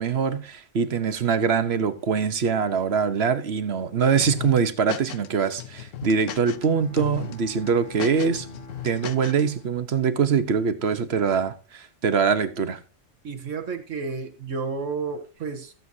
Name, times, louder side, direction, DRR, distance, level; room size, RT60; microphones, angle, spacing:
voice 1, 0.0-8.5 8.8-12.8, right 6 dB, 60° right, 1.1 m, -23 dB
sound 1, 4.2-5.3 5.6-6.7 7.0-7.4 7.7-9.4, left 9 dB, 90° left, 1.1 m, -35 dB
Bowed string instrument, 6.0-10.4, left 1 dB, 50° left, 2.0 m, -45 dB
voice 2, 13.2-15.7, right 4 dB, 90° right, 1.6 m, -31 dB
19.5 x 8.0 x 2.7 m
omnidirectional pair, 1.3 m